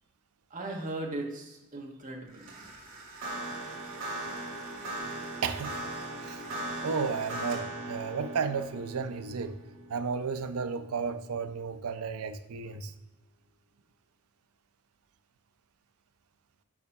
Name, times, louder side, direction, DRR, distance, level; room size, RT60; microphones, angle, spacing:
voice 1, 0.5-2.5, right 2 dB, 35° right, 0 dB, 1.2 m, -37 dB
sound 1, 2.3-11.6, right 1 dB, 65° right, 1.9 m, -39 dB
voice 2, 5.4-5.8 6.2-6.4 6.8-9.6 9.9-12.9, right 5 dB, 85° right, 9 dB, 0.5 m, -33 dB
5.3 x 4.8 x 5.4 m, 1.0 s
head